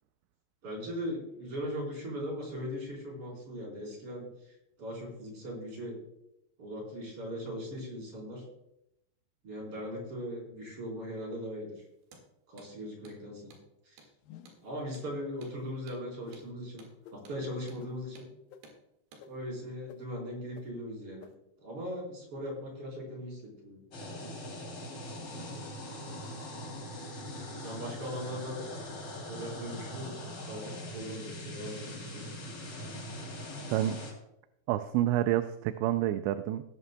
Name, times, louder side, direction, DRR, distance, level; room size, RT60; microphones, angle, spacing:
voice 1, 0.6-6.0 6.6-8.4 9.4-11.8 12.5-13.4 13.8-14.0 14.6-16.8 17.1-18.3 19.3-21.2 21.6-23.8 25.4-25.6 26.8-26.9 27.5-28.6 29.3-32.3, equal, 30° right, -2 dB, 4.7 m, -39 dB
Hammer, 12.0-12.3 12.6-12.7 13.0-13.2 13.5-13.7 14.0-14.1 14.5-14.6 14.9-15.1 15.4-15.6 15.9-16.0 16.3-16.5 16.8-16.9 17.3-17.4 17.7-17.8 18.2-18.3 18.6-18.8 19.1-19.3, right 3 dB, 70° right, 4.0 m, -55 dB
sound 1, 14.2-14.7 15.4-15.6 16.3-16.4 17.0-17.2 17.8-17.9 18.5-18.6 19.2-19.3 19.9-20.0 20.6-20.7 21.2-21.3, left 10 dB, 90° left, 2.0 m, -50 dB
sound 2, 23.9-34.1, left 1 dB, 35° left, 3.4 m, -41 dB
voice 2, 34.7-36.6, right 13 dB, 85° right, 9 dB, 2.8 m, -28 dB
18.0 x 11.0 x 2.2 m, 0.84 s
omnidirectional pair, 5.1 m